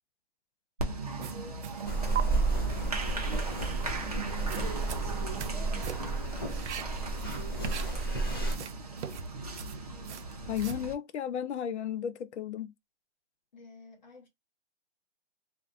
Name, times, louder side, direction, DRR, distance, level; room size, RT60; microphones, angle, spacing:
Applause, 0.8-10.9, right 3 dB, 35° right, 0.5 m, -38 dB
sound 1, 1.2-1.9 2.1-2.2 4.3-5.6 5.8-6.2 6.5-8.2 8.4-10.8, right 8 dB, 85° right, 0.6 m, -40 dB
sound 2, 1.8-8.6, right 3 dB, 20° left, 0.5 m, -32 dB
voice 1, 2.5-3.2 5.0-5.9 7.2-7.8 13.5-14.3, left 1 dB, 40° left, 1.1 m, -53 dB
voice 2, 10.5-12.7, left 9 dB, 80° left, 0.5 m, -34 dB
2.5 x 2.2 x 2.5 m
hypercardioid pair, 180°, 34 cm